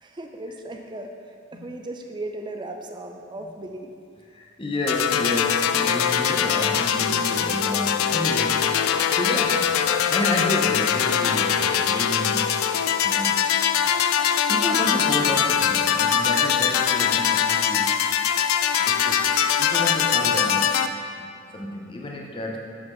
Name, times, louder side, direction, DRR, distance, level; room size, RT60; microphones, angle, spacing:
voice 1, 0.0-3.9 8.8-9.4, right 2 dB, 20° right, 4 dB, 0.4 m, -37 dB
voice 2, 4.3-9.8 10.1-12.5 13.0-13.4 14.5-18.0 18.9-21.3 21.5-22.6, left 1 dB, 25° left, -1 dB, 0.6 m, -30 dB
sound 1, 4.9-20.9, left 8 dB, 90° left, 0.3 m, -22 dB
7.8 x 4.1 x 4.4 m, 2.4 s
head